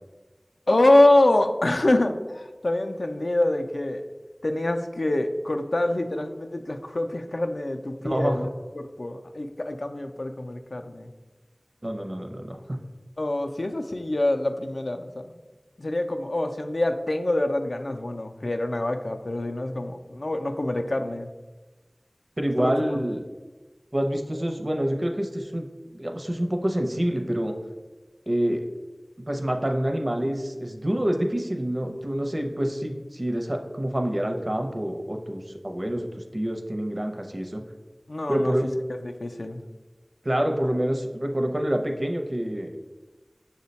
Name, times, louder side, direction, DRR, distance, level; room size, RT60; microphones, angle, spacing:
voice 1, 0.7-4.0 4.4-8.5 8.7-11.1 13.2-15.3 15.8-21.3 22.6-23.0 38.1-38.6 39.0-39.6, left 1 dB, 85° left, 6 dB, 0.3 m, -25 dB
voice 2, 8.0-8.5 11.8-12.8 22.4-23.2 23.9-25.7 25.9-27.5 28.3-28.6 29.3-37.6 38.3-38.7 40.2-42.9, right 1 dB, 50° right, 4 dB, 0.5 m, -27 dB
6.1 x 2.1 x 3.9 m, 1.2 s
wide cardioid pair, 40°, 0 cm